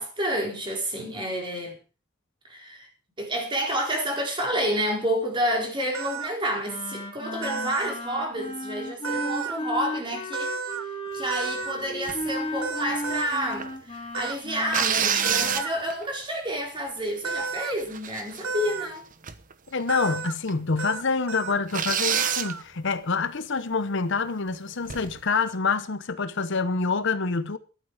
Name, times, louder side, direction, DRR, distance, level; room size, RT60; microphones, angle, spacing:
voice 1, 0.0-1.7 2.5-2.9 3.2-10.5 11.1-19.0, equal, 25° right, 4.4 m, -29 dB
sound 1, 5.9-6.3 7.4-7.9 9.0-9.6 10.3-10.8 11.3-11.7 12.6-13.4 14.1-14.4 15.2-15.7 17.2-17.7 18.4-18.9 19.9-20.3 20.8-21.0 21.3-21.6 22.1-22.6, right 5 dB, 80° right, 1.0 m, -32 dB
Wind instrument woodwind instrument, 6.6-15.7, left 1 dB, 30° left, 3.0 m, -35 dB
sound 2, 12.1-12.3 12.8-13.7 14.7-16.0 16.6-16.7 17.1-17.5 17.8-18.7 19.2-19.5 19.8-19.9 20.5-20.6 20.9-21.0 21.7-22.5 24.8-25.2, right 8 dB, 40° right, 1.0 m, -27 dB
voice 2, 19.7-27.6, left 4 dB, 60° left, 0.9 m, -26 dB
14.0 x 12.0 x 4.9 m
head